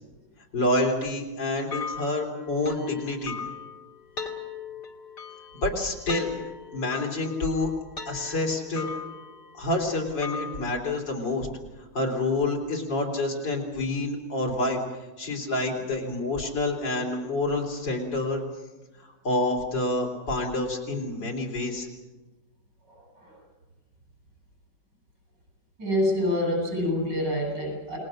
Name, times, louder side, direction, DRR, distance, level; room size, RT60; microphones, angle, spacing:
voice 1, 0.5-3.4 5.6-6.3 6.7-7.7 8.1-8.9 9.5-11.5 11.8-14.8 15.2-18.4 19.0-21.9, left 2 dB, 85° left, 0 dB, 4.4 m, -28 dB
sound 1, 1.7-10.7, left 5 dB, 70° left, 2.8 m, -39 dB
voice 2, 22.9-23.4 25.8-28.0, left 1 dB, 75° right, 1 dB, 8.8 m, -27 dB
29.0 x 20.5 x 6.5 m, 1.1 s
omnidirectional pair, 1.9 m